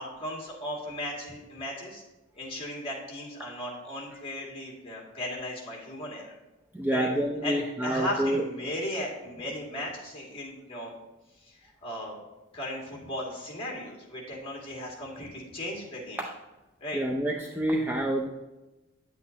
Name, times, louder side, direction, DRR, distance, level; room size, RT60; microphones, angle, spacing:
voice 1, 0.0-2.0 2.4-6.4 6.9-7.1 7.4-10.9 11.5-12.2 12.5-16.2 16.8-17.0, left 1 dB, 30° left, -3 dB, 2.2 m, -36 dB
voice 2, 6.7-8.4 16.2-16.3 16.9-18.3, right 1 dB, 10° right, 0 dB, 0.5 m, -28 dB
9.3 x 8.1 x 2.8 m, 1.1 s
head